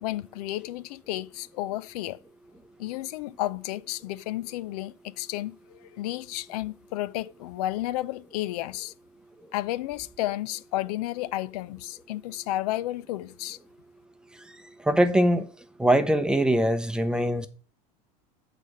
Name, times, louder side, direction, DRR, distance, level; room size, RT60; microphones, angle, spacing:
voice 1, 0.0-2.2 2.8-8.9 9.5-13.6, left 15 dB, 90° left, 0.5 m, -32 dB
voice 2, 14.8-15.5 15.8-17.5, right 1 dB, 5° right, 0.6 m, -22 dB
8.2 x 4.1 x 6.4 m
supercardioid pair, 145°, 19 cm